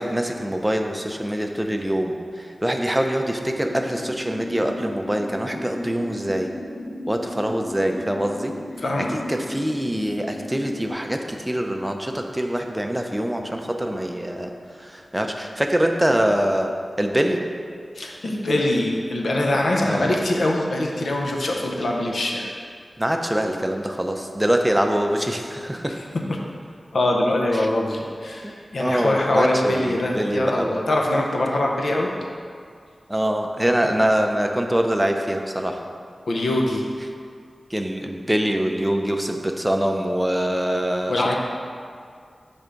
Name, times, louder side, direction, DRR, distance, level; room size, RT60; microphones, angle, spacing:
voice 1, 0.0-6.5 7.1-8.5 9.0-14.5 14.8-16.7 17.0-17.4 19.8-20.2 23.0-26.0 27.5-27.7 28.4-28.5 28.8-30.8 33.1-35.8 37.7-41.4, right 1 dB, 10° right, 3 dB, 0.5 m, -24 dB
sound 1, 3.4-10.9, left 1 dB, 40° left, 1.5 m, -36 dB
voice 2, 8.8-9.1 17.9-22.5 26.3-26.4 26.9-32.1 36.3-36.8 41.1-41.4, left 1 dB, 75° left, 0 dB, 0.6 m, -23 dB
5.6 x 3.5 x 5.1 m, 2.1 s
wide cardioid pair, 95°, 0 cm